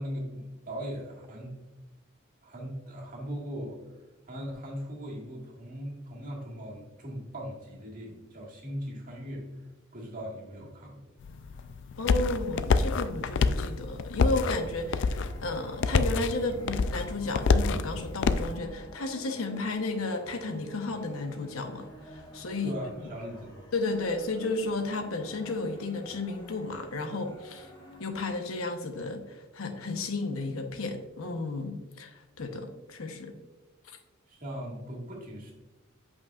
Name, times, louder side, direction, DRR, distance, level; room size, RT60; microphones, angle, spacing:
voice 1, 0.0-1.5 2.4-3.9 4.3-9.5 9.9-11.1 11.5-11.7 22.6-23.7 34.3-35.5, equal, 40° right, -3 dB, 1.8 m, -39 dB
sound 1, 11.2-18.5, left 4 dB, 60° left, 0.4 m, -27 dB
voice 2, 12.0-22.7 23.7-27.7 28.0-33.4, left 3 dB, 85° left, 6 dB, 0.9 m, -33 dB
sound 2, 14.3-28.0, equal, 25° left, 1.7 m, -50 dB
8.3 x 5.4 x 2.4 m, 1.1 s
head